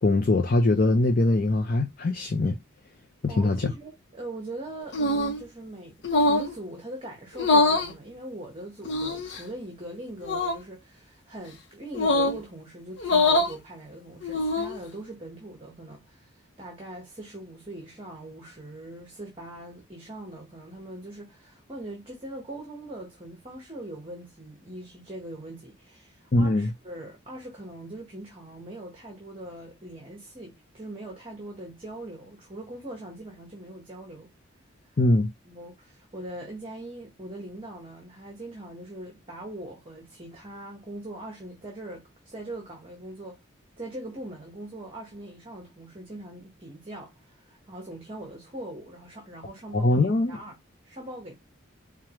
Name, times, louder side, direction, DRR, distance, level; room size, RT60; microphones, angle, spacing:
voice 1, 0.0-2.6 3.2-3.7 26.3-26.7 35.0-35.3 49.7-50.4, left 2 dB, 45° left, 0.5 m, -22 dB
voice 2, 3.3-34.3 35.5-43.4 43.8-50.6 50.8-51.3, right 1 dB, 25° right, 1.0 m, -41 dB
sound 1, 4.9-5.4 6.0-6.5 7.3-7.9 8.8-9.4 10.2-10.6 11.9-12.4 13.0-13.5 14.2-14.8, left 2 dB, 60° left, 0.9 m, -23 dB
4.7 x 2.3 x 2.9 m
head